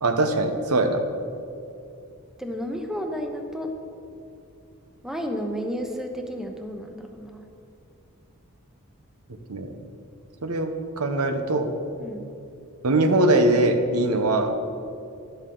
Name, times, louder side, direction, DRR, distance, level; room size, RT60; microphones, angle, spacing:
voice 1, 0.0-1.0 9.5-9.7 10.4-11.7 12.8-14.5, right 2 dB, 90° right, 6 dB, 1.1 m, -22 dB
voice 2, 2.4-3.7 5.0-7.4 12.0-12.2, equal, ahead, 3 dB, 0.9 m, -32 dB
12.0 x 11.5 x 3.9 m, 2.6 s
head